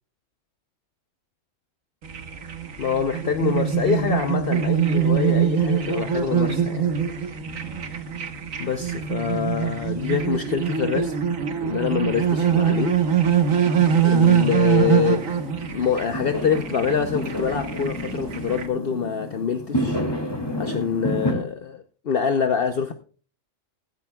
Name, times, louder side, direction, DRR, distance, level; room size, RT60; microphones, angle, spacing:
sound 1, 2.0-18.7, right 8 dB, 80° right, 1.7 m, -23 dB
voice 1, 2.8-6.9 8.6-11.1 11.6-13.0 14.0-15.2 15.7-20.0 20.6-22.9, left 7 dB, 50° left, 1.0 m, -25 dB
Fireworks, 6.8-21.3, equal, 20° left, 2.4 m, -32 dB
16.5 x 14.0 x 2.3 m
omnidirectional pair, 1.4 m